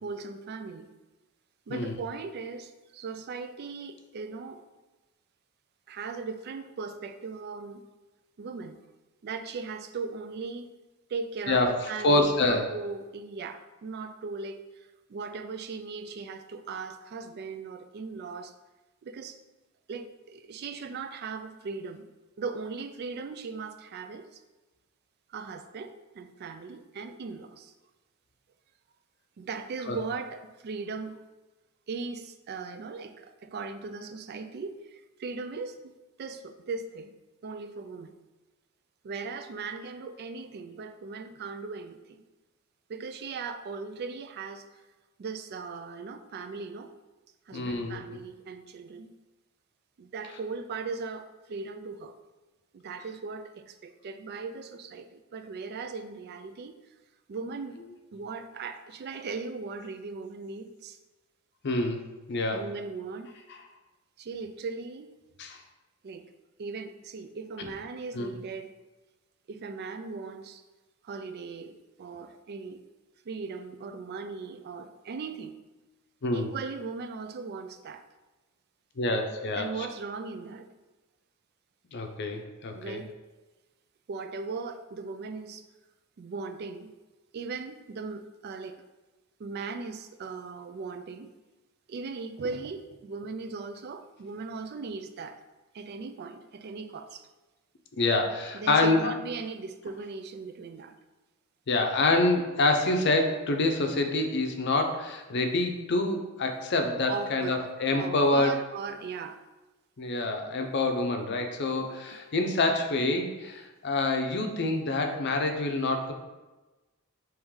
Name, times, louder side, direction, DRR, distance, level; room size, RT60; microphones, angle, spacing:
voice 1, 0.0-0.9 1.7-4.6 5.9-7.9 8.4-8.8 9.2-10.7 11.1-18.5 19.0-19.4 19.9-22.1 22.4-24.4 25.3-27.7 29.4-31.2 31.9-37.2 37.4-38.1 39.0-42.2 42.9-44.6 45.2-46.9 47.5-49.1 50.0-52.1 52.7-56.8 57.3-57.8 58.1-61.0 62.5-63.3 64.2-65.2 66.0-66.3 66.6-68.7 69.5-70.6 71.0-72.8 73.3-75.6 76.3-78.0 79.5-80.7 82.7-83.1 84.1-85.6 86.2-86.9 87.3-88.8 89.4-91.3 91.9-95.4 95.7-97.3 98.5-100.9 107.1-107.6 108.0-109.4 111.9-112.2, right 4 dB, 50° right, 9 dB, 0.3 m, -38 dB
voice 2, 12.0-12.6 29.9-30.0 47.5-48.0 61.6-62.6 65.4-65.6 68.1-68.3 76.2-76.5 79.0-79.7 81.9-83.0 98.0-99.1 101.7-108.5 110.0-116.1, left 2 dB, 55° left, 4 dB, 0.6 m, -26 dB
3.7 x 3.1 x 4.7 m, 1.1 s
head